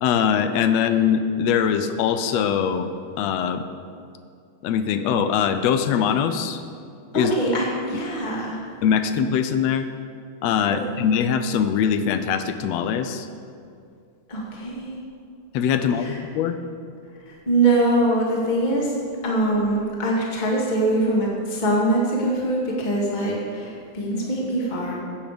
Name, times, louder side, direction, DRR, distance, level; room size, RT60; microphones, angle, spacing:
voice 1, 0.0-2.9 3.2-3.7 4.6-6.6 7.1-7.3 8.8-9.9 10.4-13.3 15.5-16.6, left 7 dB, 75° left, 9 dB, 1.7 m, -22 dB
voice 2, 7.1-8.6 10.7-10.8 14.3-15.0 15.9-16.2 17.3-19.0 19.2-25.0, right 1 dB, 15° left, -4 dB, 1.9 m, -23 dB
15.5 x 8.7 x 5.1 m, 2.4 s
omnidirectional pair, 3.3 m